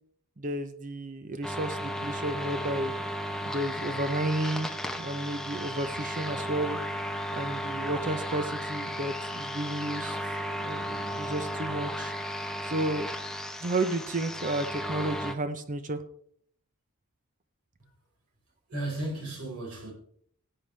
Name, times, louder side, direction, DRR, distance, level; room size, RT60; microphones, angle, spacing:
voice 1, 0.4-2.9 3.5-4.7 5.0-6.8 7.3-10.2 10.5-12.1 12.6-13.1 13.6-16.0, right 1 dB, 35° right, 0.7 m, -32 dB
sound 1, 1.4-15.3, equal, 5° left, 0.9 m, -34 dB
voice 2, 18.7-19.9, right 1 dB, 85° right, 5.1 m, -34 dB
17.0 x 9.0 x 3.4 m
head